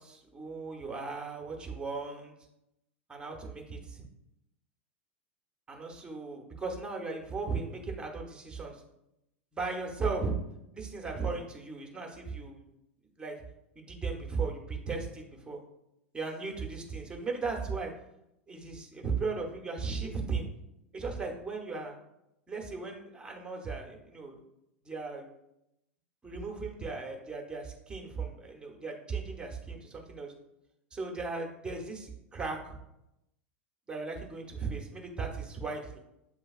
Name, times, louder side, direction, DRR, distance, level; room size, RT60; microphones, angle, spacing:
voice 1, 0.0-2.3 3.1-4.0 5.7-8.8 9.5-10.3 10.7-12.7 13.2-13.3 13.7-15.6 16.1-17.9 18.5-20.5 20.9-21.9 22.5-24.4 24.8-25.3 26.2-30.3 30.9-32.8 33.9-36.0, right 4 dB, 15° right, 1 dB, 1.0 m, -36 dB
8.0 x 2.8 x 2.4 m, 0.85 s
figure-of-eight pair, 85°, 6 cm